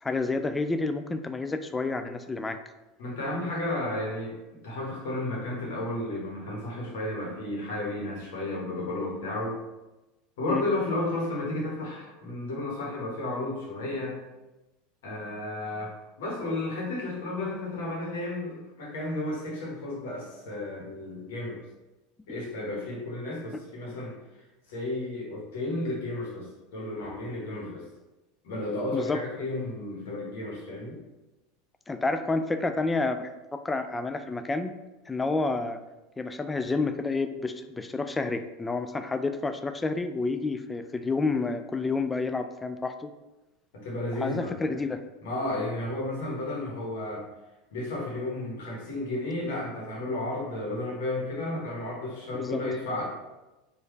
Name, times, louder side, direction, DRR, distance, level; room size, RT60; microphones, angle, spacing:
voice 1, 0.0-2.6 10.5-10.6 23.5-23.6 28.9-29.2 31.9-34.7 35.1-35.8 36.2-43.1 44.1-45.0 52.3-52.6, left 3 dB, 15° left, 8 dB, 0.3 m, -29 dB
voice 2, 3.0-4.4 4.6-9.6 10.4-14.2 15.0-21.6 22.3-24.2 24.7-27.9 28.4-31.0 43.7-44.6 45.2-47.2 47.7-53.0, left 2 dB, 65° left, -3 dB, 1.3 m, -33 dB
4.7 x 2.6 x 3.2 m, 1.0 s
figure-of-eight pair, 80°, 0 cm